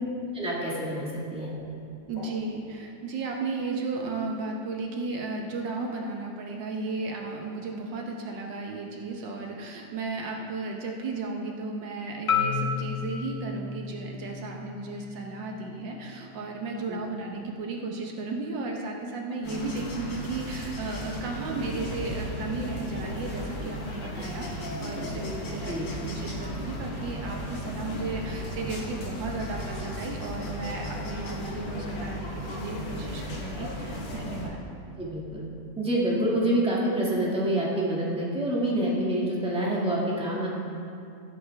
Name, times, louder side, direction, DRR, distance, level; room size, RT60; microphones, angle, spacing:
voice 1, 0.3-1.5 16.9-17.0 25.7-25.8 35.0-35.5 35.8-40.5, right 1 dB, 5° right, -5 dB, 1.8 m, -27 dB
sound 1, 1.2-2.8, equal, 25° left, 1.5 m, -47 dB
voice 2, 2.1-34.6, right 3 dB, 75° right, 1 dB, 1.7 m, -34 dB
Marimba xylophone, 12.3-16.5, left 6 dB, 50° left, 0.8 m, -32 dB
sound 2, 19.4-34.5, equal, 85° left, 2.2 m, -35 dB
16.5 x 7.8 x 3.5 m, 2.5 s
omnidirectional pair, 2.0 m